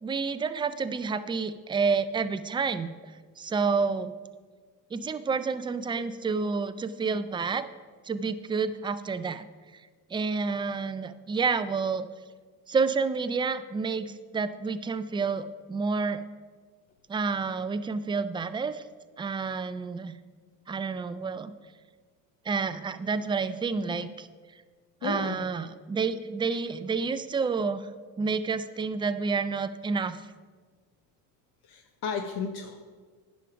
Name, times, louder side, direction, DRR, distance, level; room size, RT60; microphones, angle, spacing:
voice 1, 0.0-3.0 3.4-4.1 4.9-7.7 8.0-9.5 10.1-12.1 12.7-16.2 17.1-18.8 19.2-20.1 20.7-21.5 22.5-24.3 25.0-27.9 28.2-30.2, right 5 dB, 10° right, 12 dB, 0.3 m, -29 dB
voice 2, 25.0-25.4 31.6-32.8, left 6 dB, 60° left, 5 dB, 0.9 m, -34 dB
9.9 x 5.2 x 5.8 m, 1.5 s
supercardioid pair, 85°, 44 cm